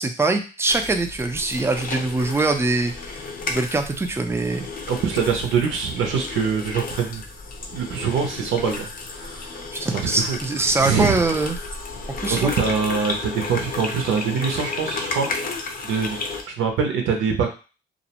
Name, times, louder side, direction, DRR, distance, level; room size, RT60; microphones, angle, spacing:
voice 1, 0.0-2.9 3.5-4.7 9.7-11.6 12.2-12.5, right 3 dB, 15° right, 6 dB, 0.4 m, -23 dB
sound 1, 0.7-16.4, left 3 dB, 50° left, 0.6 m, -33 dB
voice 2, 4.9-7.2 7.7-9.5 9.8-10.4 10.8-11.2 12.3-15.3 15.8-16.3 16.6-17.5, right 6 dB, 80° right, 3 dB, 0.6 m, -24 dB
2.4 x 2.0 x 2.8 m, 0.34 s
cardioid pair, 90°, 20 cm